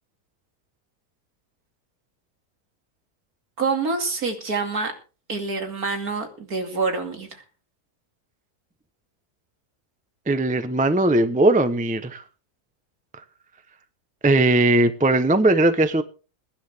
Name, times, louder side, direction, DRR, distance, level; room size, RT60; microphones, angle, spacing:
voice 1, 3.6-4.9 5.3-7.3, right 4 dB, 65° right, 3.0 m, -26 dB
voice 2, 10.3-12.2 14.2-16.0, right 2 dB, 5° right, 0.7 m, -19 dB
22.5 x 10.0 x 3.6 m
omnidirectional pair, 1.7 m